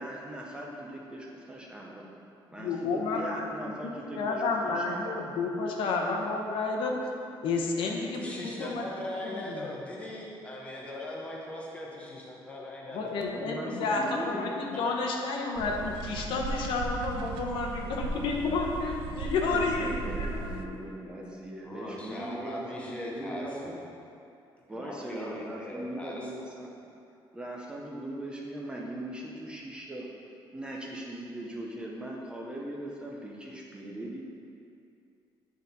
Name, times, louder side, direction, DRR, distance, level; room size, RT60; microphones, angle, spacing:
voice 1, 0.0-2.1 2.5-5.3 13.3-14.5 19.5-23.8 24.7-26.7 27.3-30.1 30.5-34.2, right 1 dB, 10° right, -2 dB, 0.5 m, -40 dB
voice 2, 2.6-3.5 3.8-7.0 7.4-8.3 8.6-8.9 9.2-9.7 12.9-20.9, left 3 dB, 70° left, 0 dB, 0.8 m, -31 dB
voice 3, 8.2-13.1 13.6-13.8 14.7-15.0 21.6-23.8 24.7-26.3, left 1 dB, 15° left, -3 dB, 0.8 m, -40 dB
sound 1, 15.6-20.7, right 3 dB, 80° right, 0.4 m, -37 dB
8.5 x 4.0 x 4.0 m, 2.6 s
cardioid pair, 180°, 9 cm